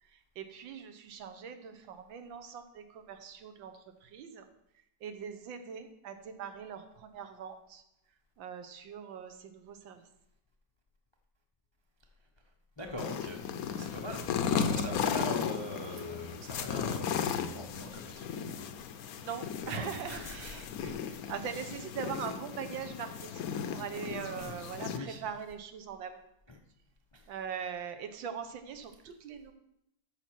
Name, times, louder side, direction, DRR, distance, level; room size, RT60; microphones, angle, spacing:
voice 1, 0.0-4.5 5.0-7.8 8.4-10.1 19.2-26.2 27.3-29.5, right 7 dB, 90° right, 8 dB, 1.7 m, -42 dB
voice 2, 12.8-13.4 13.8-18.3 18.6-19.4 19.7-21.8 24.4-24.6 24.9-25.3 26.5-26.6 27.1-27.3, left 1 dB, 40° left, 2 dB, 0.3 m, -43 dB
sound 1, 13.0-25.0, left 7 dB, 65° left, 1.0 m, -35 dB
13.0 x 5.8 x 4.5 m, 0.81 s
omnidirectional pair, 2.0 m